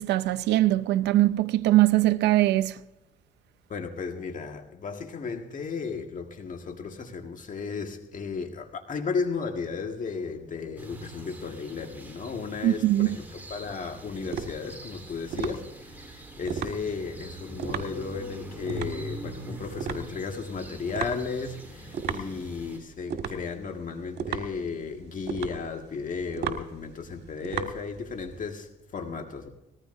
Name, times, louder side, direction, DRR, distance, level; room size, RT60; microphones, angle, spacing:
voice 1, 0.0-2.7 12.6-13.1, right 15 dB, 90° right, 0.6 m, -21 dB
voice 2, 3.7-29.5, left 5 dB, 50° left, 1.7 m, -34 dB
sound 1, 10.8-22.8, equal, 10° right, 3.7 m, -43 dB
sound 2, 12.8-28.4, right 7 dB, 75° right, 1.8 m, -36 dB
19.5 x 14.5 x 2.6 m
cardioid pair, 90°, 17 cm